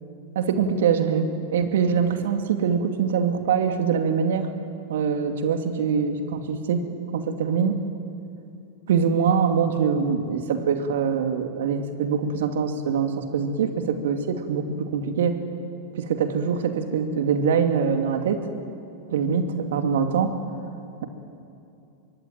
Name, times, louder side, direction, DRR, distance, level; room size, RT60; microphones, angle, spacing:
voice 1, 0.3-4.5 4.9-6.8 7.1-7.8 8.9-15.4 16.0-18.4 19.1-20.4, right 6 dB, 70° right, 6 dB, 2.6 m, -23 dB
24.5 x 23.5 x 9.1 m, 2.7 s
hypercardioid pair, 95°, 0 cm